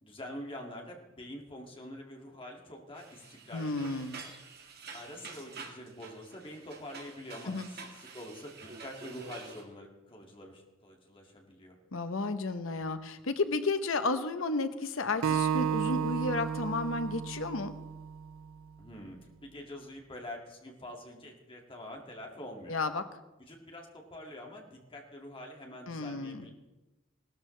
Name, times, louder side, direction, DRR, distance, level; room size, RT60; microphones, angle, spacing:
voice 1, 0.0-4.1 4.9-11.8 18.8-22.8 23.4-26.5, left 1 dB, 25° left, 0 dB, 2.3 m, -46 dB
sound 1, 2.9-9.6, right 4 dB, 50° right, 2.0 m, -48 dB
voice 2, 3.5-4.2 7.5-7.7 11.9-17.7 22.7-23.0 25.9-26.5, left 3 dB, 75° left, 10 dB, 0.9 m, -32 dB
Acoustic guitar, 15.2-18.5, right 8 dB, 80° right, 0.5 m, -32 dB
18.0 x 13.0 x 3.3 m, 1.1 s
head